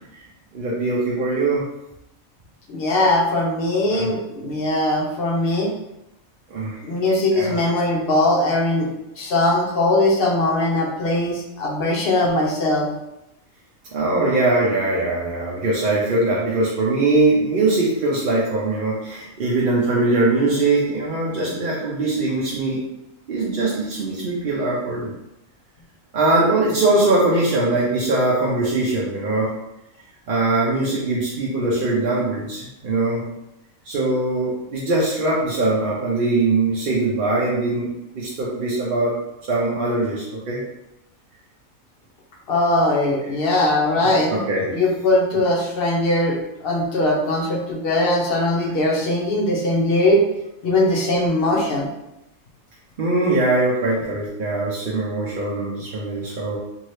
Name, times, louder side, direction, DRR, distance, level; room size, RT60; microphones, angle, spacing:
voice 1, 0.5-1.6 3.9-4.1 6.5-6.8 7.3-7.6 13.9-22.8 23.3-25.1 26.1-29.5 30.3-33.2 33.9-37.9 38.1-39.1 39.5-40.6 44.0-44.7 53.0-56.6, right 2 dB, 55° right, -5 dB, 0.6 m, -21 dB
voice 2, 2.7-5.7 6.8-8.9 9.2-12.9 42.5-44.3 44.7-50.2 50.6-51.9, left 1 dB, 60° left, -1 dB, 0.6 m, -20 dB
2.7 x 2.7 x 3.2 m, 0.88 s
omnidirectional pair, 1.5 m